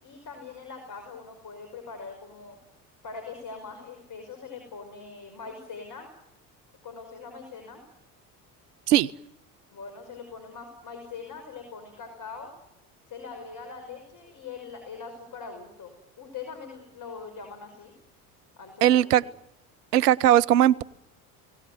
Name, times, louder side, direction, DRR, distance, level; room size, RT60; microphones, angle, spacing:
voice 1, 0.0-2.6 3.0-6.1 6.8-7.8 9.7-12.5 13.1-17.9 18.6-19.3, left 5 dB, 45° left, 6 dB, 5.6 m, -42 dB
voice 2, 18.8-19.2 19.9-20.8, right 12 dB, 85° right, 19 dB, 0.8 m, -19 dB
23.5 x 18.5 x 9.4 m, 0.85 s
hypercardioid pair, 65°, 46 cm